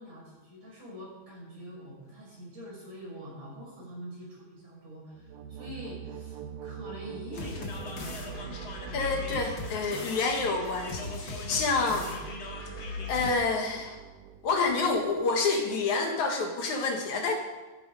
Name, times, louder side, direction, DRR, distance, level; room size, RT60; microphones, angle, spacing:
voice 1, 0.0-9.2 11.9-12.2, equal, 55° right, -4 dB, 7.3 m, -45 dB
sound 1, 5.1-15.8, right 7 dB, 75° right, 2.4 m, -45 dB
sound 2, 7.3-13.3, left 2 dB, 45° left, 2.3 m, -38 dB
voice 2, 8.9-12.1 13.1-14.0 14.4-17.4, left 3 dB, 65° left, 3 dB, 2.7 m, -28 dB
13.5 x 13.0 x 5.2 m, 1.2 s
omnidirectional pair, 3.7 m